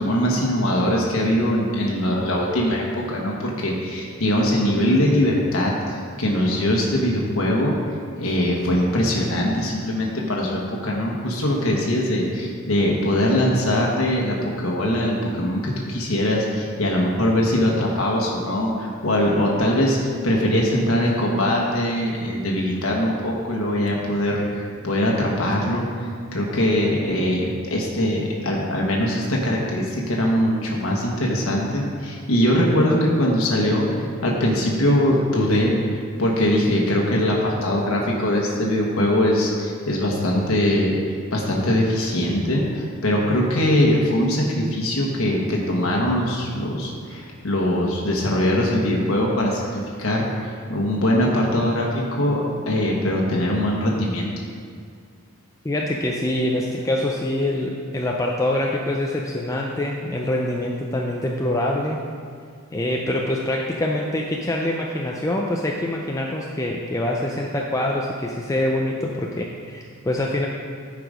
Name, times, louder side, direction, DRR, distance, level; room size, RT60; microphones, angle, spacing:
voice 1, 0.0-7.8 8.2-20.0 20.2-41.0 41.3-54.3, left 1 dB, 75° left, -2 dB, 1.2 m, -22 dB
voice 2, 55.6-62.0 62.7-70.5, left 1 dB, 15° left, -1 dB, 0.4 m, -25 dB
10.0 x 4.9 x 5.1 m, 2.1 s
head